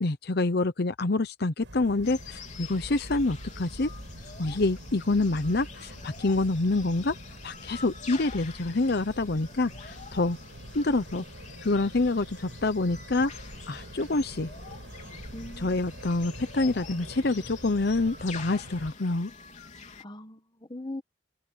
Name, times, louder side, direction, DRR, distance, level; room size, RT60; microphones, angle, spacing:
voice 1, 0.0-3.9 4.4-7.1 7.4-10.4 10.7-11.2 11.6-13.3 13.7-14.5 15.6-19.3, left 2 dB, 60° left, 0.9 m, -27 dB
sound 1, 1.6-18.9, right 1 dB, 85° right, 7.5 m, -45 dB
sound 2, 2.0-20.0, left 5 dB, 40° left, 3.7 m, -46 dB
voice 2, 15.3-16.1 20.0-21.0, left 1 dB, 25° left, 1.5 m, -41 dB
head